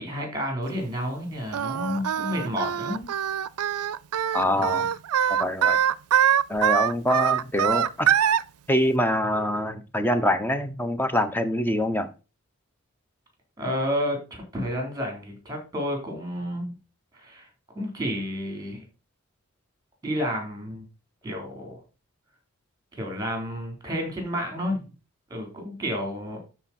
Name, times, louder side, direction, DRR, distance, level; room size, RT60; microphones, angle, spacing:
voice 1, 0.0-3.1 4.5-4.7 13.6-16.7 17.1-17.5 17.7-18.8 20.0-20.8 21.2-21.8 22.9-24.9 25.3-26.4, equal, 15° right, 3.7 m, -30 dB
Singing, 1.5-8.4, right 9 dB, 80° right, 0.5 m, -23 dB
voice 2, 4.3-4.9 5.3-5.8 6.5-8.1 8.7-12.1, left 1 dB, 10° left, 0.9 m, -25 dB
12.5 x 4.6 x 4.2 m
head